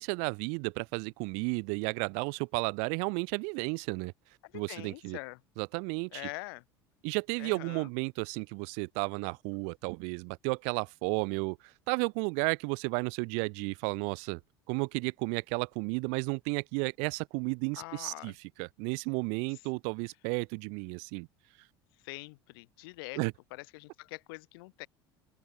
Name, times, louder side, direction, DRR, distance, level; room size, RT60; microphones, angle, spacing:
voice 1, 0.0-4.1 4.5-5.2 5.6-6.3 7.0-11.6 11.9-14.4 14.7-21.3 23.2-23.3, right 39 dB, 60° right, 0.9 m, -33 dB
voice 2, 4.5-5.4 6.1-6.6 7.4-7.9 17.8-18.3 22.0-23.2 23.5-24.9, left 25 dB, 65° left, 2.6 m, -44 dB
open air
figure-of-eight pair, 70°, 13 cm